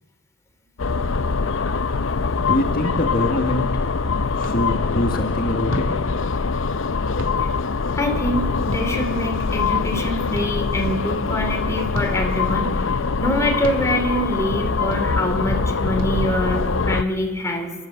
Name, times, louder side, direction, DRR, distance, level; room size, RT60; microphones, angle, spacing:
sound 1, 0.8-17.0, left 4 dB, 80° left, 0.7 m, -23 dB
voice 1, 2.4-3.8 4.4-5.9, left 1 dB, 50° left, 2 dB, 1.7 m, -24 dB
sound 2, 4.4-4.6 5.7-5.9 7.2-7.4 8.7-8.9 10.3-10.5 11.9-12.1 13.6-13.8 14.9-15.0 16.0-16.1, equal, 85° right, 2.5 m, -31 dB
voice 2, 7.9-12.8 13.2-17.7, left 1 dB, 15° left, 3 dB, 2.6 m, -25 dB
29.5 x 12.5 x 7.9 m, 1.4 s
head